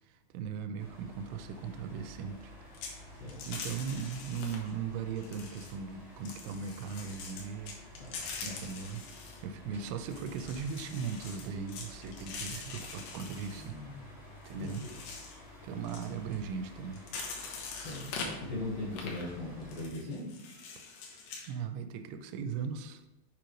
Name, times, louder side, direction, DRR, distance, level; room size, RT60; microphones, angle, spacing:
voice 1, 0.0-2.5 3.1-3.2 3.5-7.8 8.4-9.1 9.4-13.8 14.5-14.8 15.6-17.1 21.5-23.0, right 6 dB, 85° right, 8 dB, 2.5 m, -38 dB
sound 1, 0.8-19.9, left 1 dB, 45° left, 3.1 m, -52 dB
sound 2, 2.7-3.0 3.3-4.7 5.2-5.7 6.3-9.4 10.1-13.7 14.4-15.4 15.8-16.4 16.9-18.3 18.9-19.2 19.6-21.5, left 4 dB, 85° left, 2.9 m, -44 dB
voice 2, 3.1-3.4 7.9-8.5 13.6-14.1 14.6-14.9 17.8-20.3, left 2 dB, 65° left, -7 dB, 1.7 m, -40 dB
7.3 x 5.0 x 3.1 m, 0.97 s
omnidirectional pair, 4.5 m